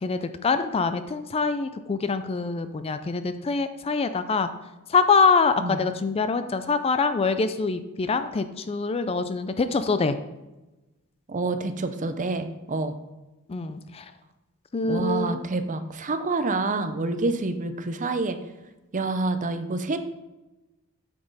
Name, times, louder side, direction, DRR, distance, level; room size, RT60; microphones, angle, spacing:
voice 1, 0.0-4.5 4.9-10.2 13.5-14.1 14.7-15.4, left 4 dB, 25° left, 10 dB, 0.4 m, -24 dB
voice 2, 11.3-13.0 14.9-18.4 18.9-20.0, right 3 dB, 35° right, 9 dB, 0.6 m, -27 dB
8.5 x 6.0 x 4.0 m, 1.1 s
head